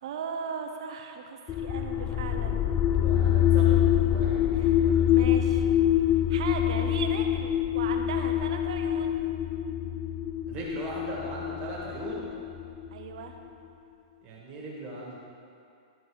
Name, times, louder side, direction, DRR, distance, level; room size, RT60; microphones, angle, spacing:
voice 1, 0.0-2.7 4.5-5.7 6.3-9.2 12.9-13.4, right 5 dB, 65° right, 4 dB, 0.8 m, -37 dB
sound 1, 1.5-13.3, left 10 dB, 25° left, 0.3 m, -25 dB
voice 2, 2.9-4.4 4.8-5.3 10.5-12.3 14.2-15.2, right 1 dB, 30° right, -4 dB, 1.8 m, -39 dB
12.0 x 4.4 x 4.8 m, 2.5 s
hypercardioid pair, 150°, 3 cm